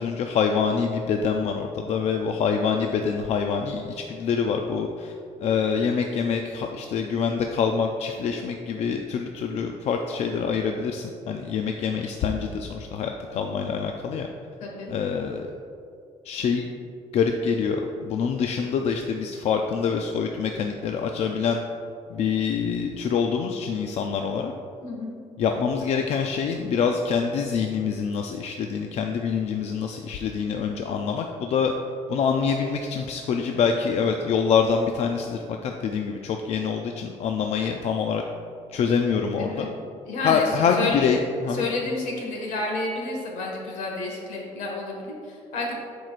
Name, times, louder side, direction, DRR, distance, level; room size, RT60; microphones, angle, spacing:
voice 1, 0.0-5.1 5.4-14.3 14.9-15.5 16.2-16.7 17.1-21.6 22.1-24.5 25.4-31.7 32.1-38.2 38.7-39.7 40.2-41.7, left 6 dB, 60° left, 3 dB, 0.4 m, -25 dB
voice 2, 14.6-14.9 24.8-25.1 39.0-39.7 40.0-41.0 41.5-45.8, left 3 dB, 80° left, -1 dB, 1.6 m, -31 dB
11.5 x 4.7 x 2.5 m, 2.5 s
cardioid pair, 135°, 13 cm